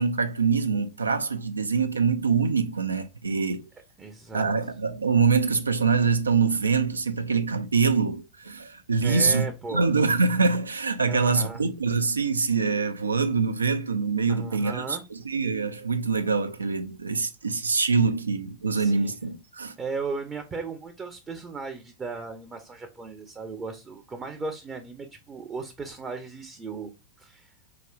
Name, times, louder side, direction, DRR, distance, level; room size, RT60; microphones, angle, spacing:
voice 1, 0.0-3.7 4.3-15.0 15.2-19.7, right 4 dB, 75° right, 0.4 m, -24 dB
voice 2, 4.0-4.5 9.0-9.9 11.1-11.6 14.3-15.0 18.8-19.1 19.8-26.9 27.2-27.5, right 4 dB, 20° right, 0.5 m, -36 dB
4.3 x 2.9 x 2.4 m
figure-of-eight pair, 90°, 0 cm